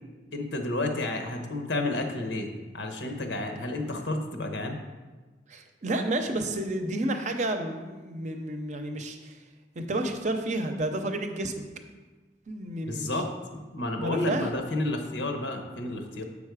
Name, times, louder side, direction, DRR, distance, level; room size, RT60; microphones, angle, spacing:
voice 1, 0.3-4.8 12.8-13.3 13.5-16.2, left 2 dB, 85° left, 4 dB, 1.1 m, -31 dB
voice 2, 5.5-9.4 9.7-11.7 12.5-13.1 14.0-14.5, right 1 dB, 40° right, 6 dB, 0.6 m, -30 dB
7.4 x 5.3 x 4.8 m, 1.3 s
head